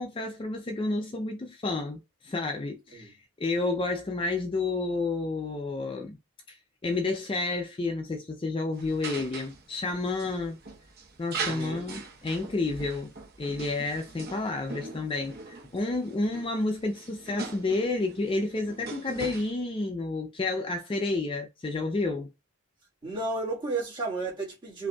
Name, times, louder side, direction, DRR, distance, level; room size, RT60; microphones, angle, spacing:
voice 1, 0.0-6.2 6.5-6.6 6.8-10.6 11.2-13.1 13.4-22.3, left 3 dB, 25° left, 0.4 m, -30 dB
sound 1, 8.7-19.5, right 4 dB, 45° right, 0.9 m, -41 dB
voice 2, 11.4-11.8 23.0-24.9, right 3 dB, 20° right, 1.5 m, -33 dB
5.0 x 2.6 x 2.3 m
head